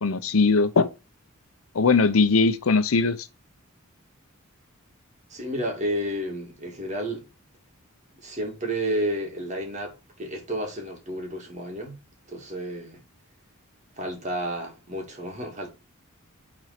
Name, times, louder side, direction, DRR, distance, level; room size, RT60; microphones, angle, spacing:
voice 1, 0.0-0.9 1.7-3.2, left 4 dB, 75° left, 0.7 m, -20 dB
voice 2, 5.3-7.2 8.2-12.0 12.3-13.0 14.0-15.7, right 1 dB, 35° right, 2.4 m, -31 dB
6.1 x 4.2 x 5.8 m
head